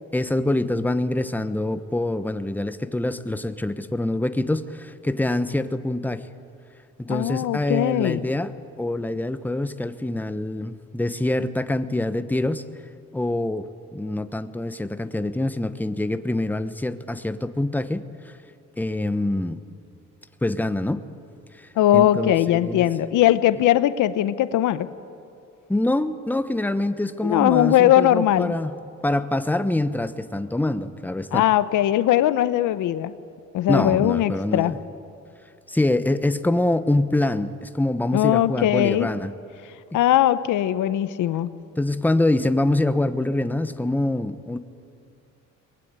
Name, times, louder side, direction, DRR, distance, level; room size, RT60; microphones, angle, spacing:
voice 1, 0.1-6.3 7.0-12.6 13.1-18.3 18.8-19.6 20.4-21.0 21.5-22.9 25.7-28.7 29.0-31.4 33.7-34.8 35.7-39.3 41.8-44.6, left 1 dB, 5° left, 11 dB, 1.0 m, -25 dB
voice 2, 7.1-8.2 21.8-24.9 27.2-28.5 31.3-33.1 33.5-34.7 38.1-39.1 39.9-41.5, left 12 dB, 85° left, 14 dB, 0.9 m, -20 dB
22.5 x 20.0 x 8.9 m, 2.5 s
cardioid pair, 90°, 30 cm